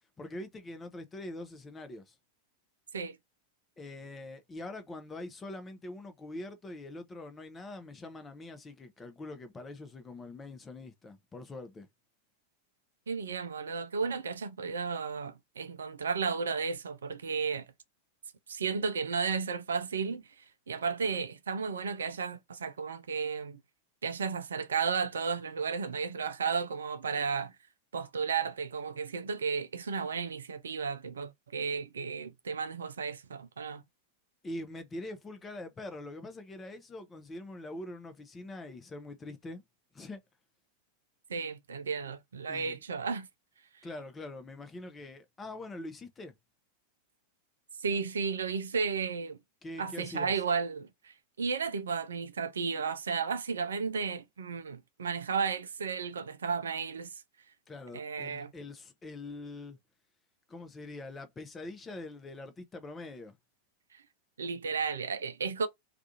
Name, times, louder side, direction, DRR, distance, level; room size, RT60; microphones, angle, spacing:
voice 1, 0.2-2.2 3.8-11.9 34.4-39.6 39.9-40.2 42.5-42.8 43.8-46.3 49.6-50.3 57.7-59.8 60.5-63.4, left 2 dB, 15° left, 0.6 m, -43 dB
voice 2, 13.1-17.7 18.5-23.6 24.0-27.6 27.9-33.8 41.3-43.3 47.8-49.4 49.8-57.1 57.9-58.5 63.9-64.0 64.4-65.7, right 5 dB, 70° right, 0.3 m, -33 dB
2.4 x 2.3 x 2.5 m
figure-of-eight pair, 90°, 0 cm